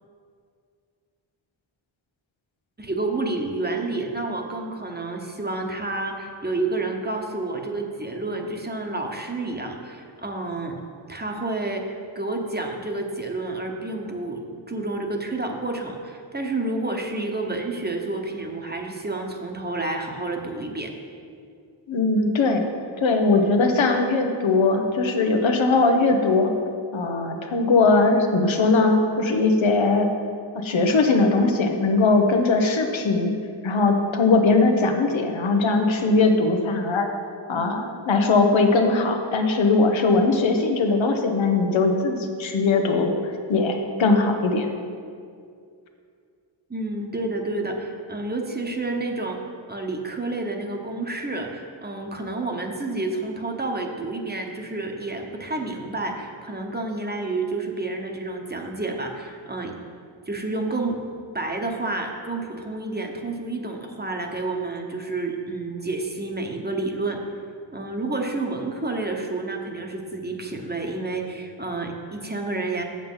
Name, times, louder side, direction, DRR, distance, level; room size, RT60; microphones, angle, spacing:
voice 1, 2.8-10.8 11.1-20.9 23.3-23.5 46.7-49.4 49.7-59.7 60.3-61.0 61.3-67.2 67.7-72.8, right 2 dB, 20° right, 2 dB, 1.0 m, -29 dB
voice 2, 21.9-22.6 23.0-26.5 26.9-30.1 30.5-33.3 33.6-37.1 37.5-44.7, left 3 dB, 80° left, 4 dB, 1.0 m, -20 dB
7.5 x 7.1 x 5.6 m, 2.3 s
wide cardioid pair, 85°, 46 cm